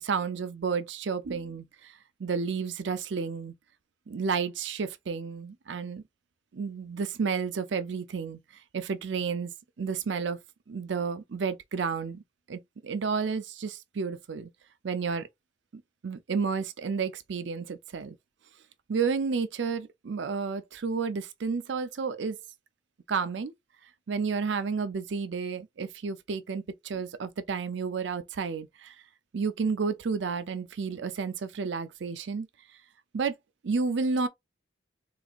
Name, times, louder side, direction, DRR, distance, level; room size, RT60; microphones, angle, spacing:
voice 1, 0.0-1.9 2.2-3.5 4.1-6.0 6.5-8.4 8.7-9.5 9.8-10.4 10.7-12.2 12.5-14.5 14.8-15.3 16.0-18.2 18.9-22.4 23.1-23.5 24.1-28.9 29.3-32.5 33.1-33.4 33.6-34.3, right 5 dB, 80° right, 0.5 m, -31 dB
4.0 x 2.5 x 2.4 m
head